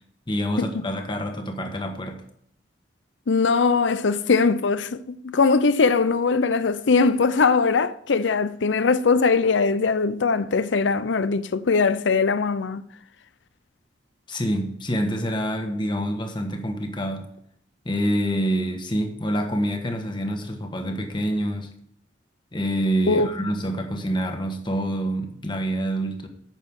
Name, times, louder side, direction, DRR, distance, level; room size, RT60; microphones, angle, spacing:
voice 1, 0.3-2.2 14.3-17.3 17.8-21.7 22.5-26.3, equal, 25° left, 1.4 m, -26 dB
voice 2, 3.3-12.8 23.1-23.3, left 4 dB, 80° left, 0.6 m, -21 dB
9.0 x 6.5 x 6.2 m
head